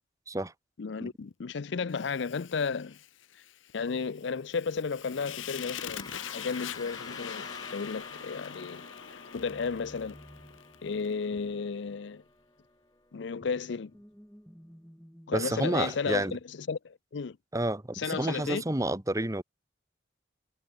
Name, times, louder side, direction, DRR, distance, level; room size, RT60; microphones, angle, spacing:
voice 1, 0.8-3.0 3.7-8.9 9.1-10.2 10.8-12.2 13.1-13.9 15.3-17.4 17.9-18.6, left 5 dB, 65° left, 0.5 m, -33 dB
Fire, 1.9-11.1, left 9 dB, 80° left, 0.9 m, -44 dB
sound 1, 4.7-13.2, left 3 dB, 20° left, 7.1 m, -49 dB
sound 2, 9.3-12.4 12.9-15.6, equal, ahead, 5.1 m, -54 dB
voice 2, 15.3-16.4 17.5-19.4, right 1 dB, 15° right, 1.2 m, -30 dB
head